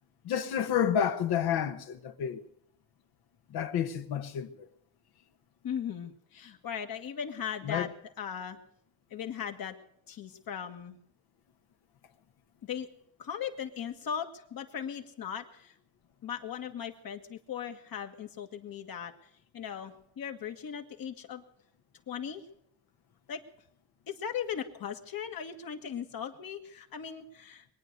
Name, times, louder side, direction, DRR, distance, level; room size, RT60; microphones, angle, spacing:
voice 1, 0.2-2.4 3.5-4.5 7.6-7.9, left 9 dB, 85° left, 1.2 m, -30 dB
voice 2, 5.6-7.9 8.2-8.6 9.1-9.8 10.1-11.0 12.6-12.9 13.2-15.7 16.2-19.1 19.5-21.4 22.1-22.4 23.3-23.4 24.1-27.7, left 8 dB, 65° left, 1.7 m, -38 dB
22.0 x 9.4 x 6.7 m
cardioid pair, 80°, 37 cm